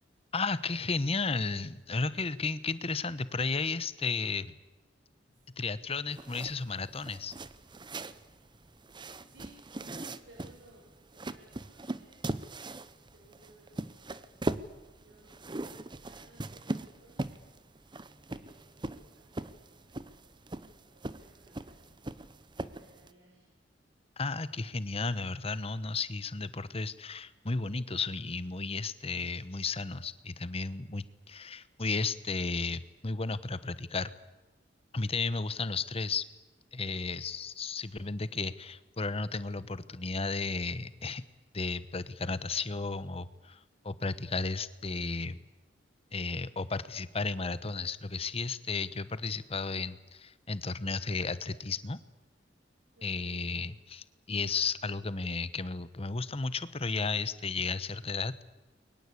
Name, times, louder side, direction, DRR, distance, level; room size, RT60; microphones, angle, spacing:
voice 1, 0.3-4.5 5.6-7.3 24.2-34.1 34.9-36.2 36.7-41.2 41.5-45.4 46.1-52.0 53.0-58.4, left 4 dB, 35° left, 15 dB, 1.1 m, -34 dB
voice 2, 5.1-5.4 8.1-12.5 13.0-14.4 14.9-18.0 18.3-22.2 22.6-23.6 43.8-43.9 52.4-53.7, right 1 dB, 80° right, -1 dB, 7.3 m, -61 dB
sound 1, 6.1-23.1, right 2 dB, 25° right, 0.9 m, -40 dB
29.5 x 22.5 x 8.5 m, 1.1 s
head